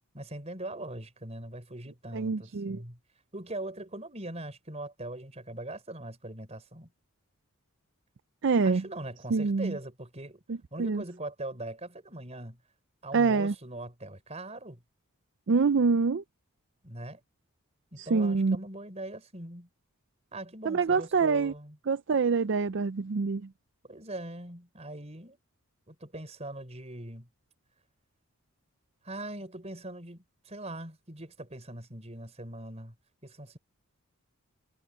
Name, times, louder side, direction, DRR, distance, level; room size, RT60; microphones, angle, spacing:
voice 1, 0.1-3.0 3.3-6.9 8.6-10.4 10.7-12.6 13.0-14.8 16.8-17.2 17.9-19.7 20.3-21.8 23.8-25.4 25.9-27.3 29.0-32.9 33.2-33.6, right 1 dB, 30° right, 4.9 m, -41 dB
voice 2, 2.1-2.8 8.4-8.8 9.3-9.8 10.5-11.0 13.1-13.5 15.5-16.2 18.0-18.6 20.6-21.5 21.9-23.5, right 4 dB, 55° right, 0.4 m, -26 dB
head